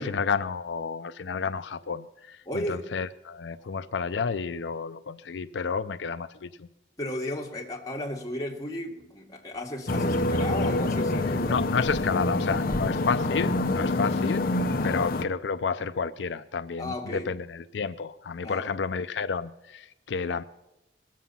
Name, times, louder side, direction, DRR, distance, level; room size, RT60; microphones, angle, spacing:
voice 1, 0.0-6.7 11.5-14.4 14.8-20.4, left 5 dB, 85° left, 0.5 m, -31 dB
voice 2, 2.5-2.9 7.0-11.6 12.6-12.9 14.7-15.0 16.8-17.3 18.4-18.7, left 1 dB, 20° left, 2.1 m, -35 dB
sound 1, 9.9-15.2, left 2 dB, 55° left, 0.9 m, -26 dB
20.5 x 7.7 x 5.5 m
head